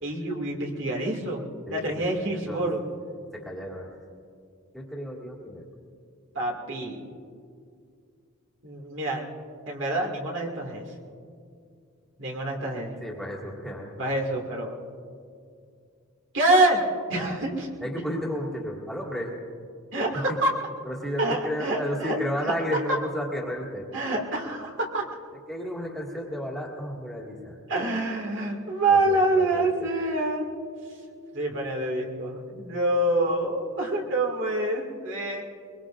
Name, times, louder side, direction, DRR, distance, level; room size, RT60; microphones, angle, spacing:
voice 1, 0.0-2.8 6.3-7.0 8.6-9.3 9.7-10.8 12.2-13.0 14.0-14.8 16.3-17.8 19.9-20.5 21.2-22.2 22.9-23.0 23.9-25.1 27.7-30.5 31.3-35.4, right 2 dB, 60° right, 0 dB, 2.2 m, -26 dB
voice 2, 1.7-2.6 3.3-4.0 4.7-5.7 13.0-14.0 17.8-19.3 20.1-20.4 20.8-23.9 25.5-27.6 28.9-29.9, equal, ahead, -3 dB, 2.0 m, -33 dB
23.0 x 22.5 x 2.5 m, 2.3 s
head